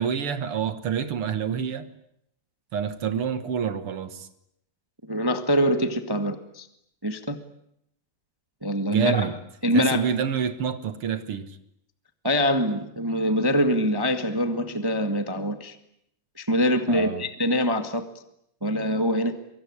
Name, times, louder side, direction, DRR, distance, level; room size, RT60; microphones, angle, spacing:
voice 1, 0.0-1.9 2.7-4.3 8.9-9.3 9.7-11.6 16.9-17.3, right 7 dB, 55° right, 1.8 m, -27 dB
voice 2, 5.1-6.7 7.0-7.4 8.6-9.2 9.6-10.1 12.2-15.7 16.4-18.0 18.6-19.4, equal, 25° right, 0.5 m, -24 dB
24.5 x 24.0 x 9.8 m
omnidirectional pair, 3.9 m